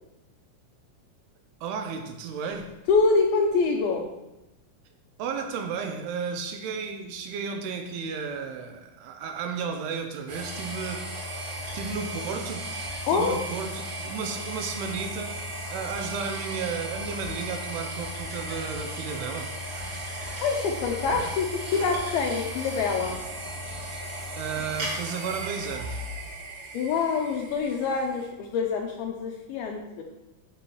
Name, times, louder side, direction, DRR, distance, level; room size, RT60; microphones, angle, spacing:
voice 1, 1.6-2.7 5.2-12.7 13.1-15.4 15.7-19.5 24.4-26.0, right 5 dB, 80° right, 5 dB, 2.5 m, -33 dB
voice 2, 2.9-4.0 13.1-13.4 20.4-23.2 26.7-30.0, left 4 dB, 80° left, 2 dB, 2.2 m, -25 dB
sound 1, 10.3-28.3, right 1 dB, 40° right, 3.2 m, -36 dB
12.0 x 6.8 x 3.1 m, 0.95 s
omnidirectional pair, 4.9 m